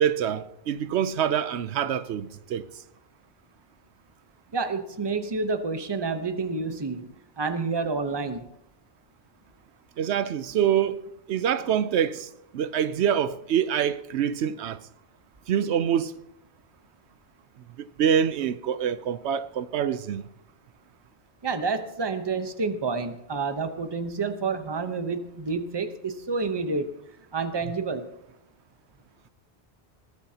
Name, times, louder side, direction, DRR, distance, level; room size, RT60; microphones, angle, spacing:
voice 1, 0.0-2.7 10.0-11.0 11.3-14.8 15.5-16.2 17.8-20.2, right 9 dB, 85° right, 0.9 m, -25 dB
voice 2, 4.5-7.1 7.4-8.5 21.4-27.0 27.3-28.1, right 4 dB, 25° right, 0.8 m, -29 dB
21.0 x 15.5 x 2.8 m
omnidirectional pair, 1.1 m